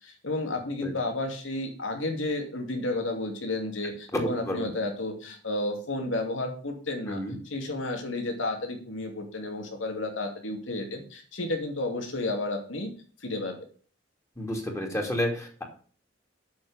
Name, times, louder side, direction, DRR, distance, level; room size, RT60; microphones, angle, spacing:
voice 1, 0.0-7.2 7.5-12.9 13.2-13.6, left 2 dB, 85° left, 3 dB, 2.6 m, -32 dB
voice 2, 4.1-4.7 7.1-7.4 14.4-15.6, left 1 dB, 15° left, 1 dB, 2.7 m, -30 dB
7.7 x 6.6 x 8.0 m, 0.43 s
head